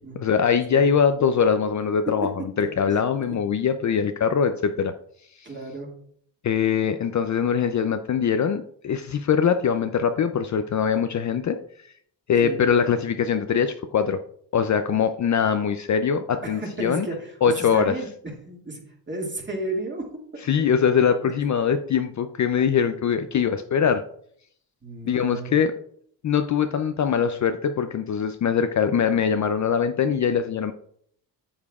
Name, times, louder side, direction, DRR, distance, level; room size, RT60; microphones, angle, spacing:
voice 1, 0.1-2.3 2.6-4.9 6.4-11.6 12.3-14.2 14.5-17.1 17.4-18.0 20.5-24.0 25.1-25.7 26.2-30.7, left 7 dB, 45° left, 9 dB, 0.5 m, -22 dB
voice 2, 2.6-3.4 5.4-5.9 12.4-12.6 16.4-18.1 18.4-20.1 20.7-21.3 24.8-25.5, right 2 dB, 25° right, 0 dB, 2.1 m, -34 dB
8.4 x 7.2 x 2.4 m, 0.63 s
cardioid pair, 90°, 43 cm